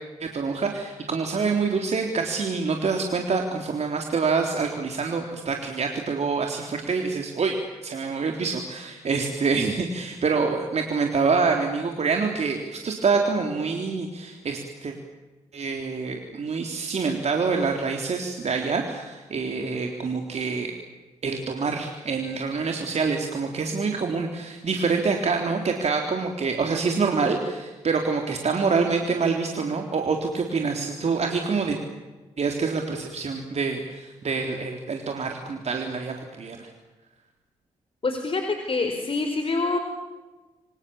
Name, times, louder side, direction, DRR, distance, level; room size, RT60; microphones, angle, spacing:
voice 1, 0.2-14.9 15.5-20.8 21.2-31.8 32.4-36.7, right 4 dB, 50° right, 3 dB, 3.9 m, -26 dB
voice 2, 38.0-39.8, left 3 dB, 40° left, 5 dB, 4.8 m, -26 dB
29.5 x 25.5 x 7.3 m, 1.2 s
hypercardioid pair, 45°, 14 cm